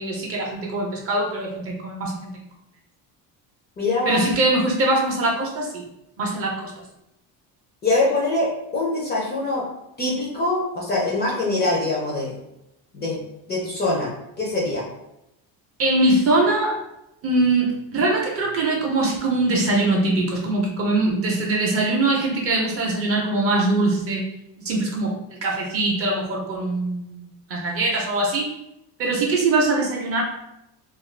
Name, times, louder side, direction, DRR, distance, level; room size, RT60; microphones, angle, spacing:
voice 1, 0.0-2.3 4.1-5.8 6.2-6.7 15.8-16.8 17.2-24.2 24.6-28.5 29.0-30.2, right 2 dB, 35° right, -1 dB, 0.5 m, -22 dB
voice 2, 3.8-4.3 7.8-9.6 10.0-12.3 12.9-13.2 13.5-14.9, left 2 dB, 25° left, -3 dB, 0.4 m, -23 dB
2.4 x 2.3 x 3.1 m, 0.85 s
cardioid pair, 165°, 44 cm